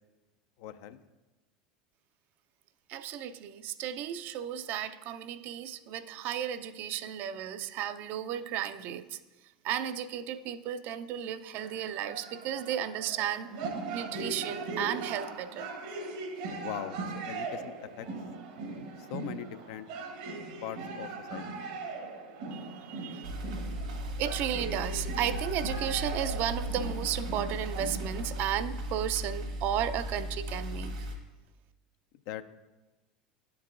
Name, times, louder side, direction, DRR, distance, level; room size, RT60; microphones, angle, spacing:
voice 1, 0.6-1.0 16.5-17.0 17.3-18.1 19.1-19.9 20.6-21.4 32.3-32.4, left 11 dB, 65° left, 11 dB, 0.4 m, -40 dB
voice 2, 2.9-9.2 9.6-13.5 13.9-15.7 22.5-23.3 24.2-30.9, right 10 dB, 50° right, 12 dB, 0.4 m, -34 dB
sound 1, 11.5-28.4, right 3 dB, 70° right, 0.9 m, -40 dB
sound 2, 23.2-31.1, equal, 85° right, 1.4 m, -36 dB
11.0 x 4.7 x 2.4 m, 1.1 s
hypercardioid pair, 80°, 4 cm